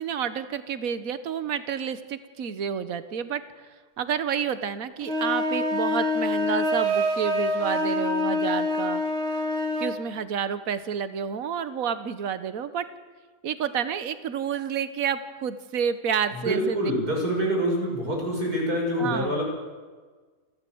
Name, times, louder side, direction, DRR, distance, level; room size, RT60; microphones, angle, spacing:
voice 1, 0.0-3.4 4.0-9.0 9.8-12.8 13.4-16.9 19.0-19.4, right 7 dB, 65° right, 11 dB, 1.5 m, -29 dB
sound 1, 5.0-10.0, left 1 dB, 40° right, 2.3 m, -26 dB
voice 2, 16.4-19.4, equal, 90° right, -1 dB, 7.2 m, -26 dB
29.5 x 13.0 x 7.9 m, 1.4 s
omnidirectional pair, 1.6 m